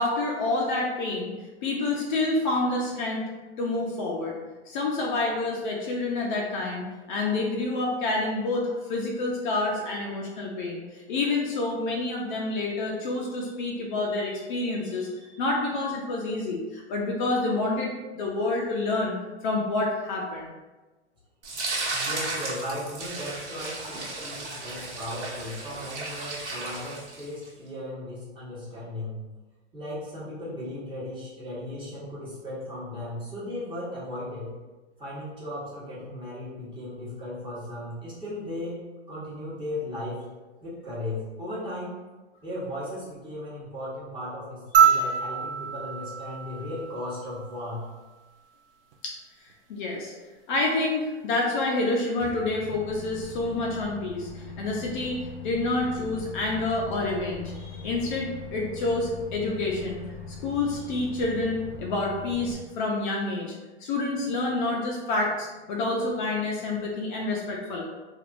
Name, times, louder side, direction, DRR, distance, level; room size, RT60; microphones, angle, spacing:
voice 1, 0.0-1.3 1.6-3.3 3.6-4.4 4.7-15.1 15.4-19.2 19.4-20.5 49.0-49.1 49.7-50.1 50.5-60.0 60.4-63.5 63.8-67.8, left 2 dB, 45° left, -2 dB, 0.6 m, -28 dB
sound 1, 21.4-27.5, right 2 dB, 75° right, 1.3 m, -34 dB
voice 2, 21.9-29.2 29.7-34.5 35.0-38.8 39.1-40.2 40.6-41.9 42.4-47.8, left 1 dB, 15° right, -9 dB, 1.1 m, -36 dB
sound 2, 44.7-47.3 48.9-49.0, right 8 dB, 55° right, 0.5 m, -24 dB
Microwave oven, 52.2-62.5, left 3 dB, 10° left, 0.3 m, -41 dB
3.4 x 2.5 x 2.5 m, 1.2 s
hypercardioid pair, 130°, 34 cm